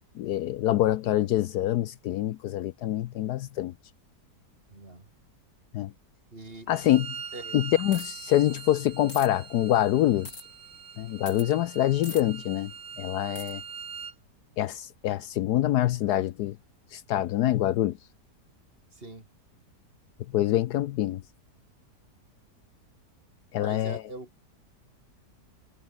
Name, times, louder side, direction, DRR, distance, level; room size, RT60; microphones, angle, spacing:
voice 1, 0.2-3.7 5.7-5.9 6.7-7.1 7.5-10.3 11.0-12.7 13.0-13.6 14.6-16.6 16.9-18.0 20.3-21.2 23.5-24.0, left 13 dB, 70° left, 1.1 m, -25 dB
voice 2, 4.7-5.1 6.3-6.7 7.3-7.6 18.9-19.3 23.5-24.3, right 2 dB, 30° right, 3.7 m, -42 dB
Bowed string instrument, 6.7-14.1, right 7 dB, 85° right, 2.5 m, -42 dB
sound 1, 7.9-8.2 9.1-9.3 10.2-10.4 11.3-11.5 12.0-12.2 13.4-13.5, left 2 dB, 55° left, 7.4 m, -41 dB
omnidirectional pair, 1.8 m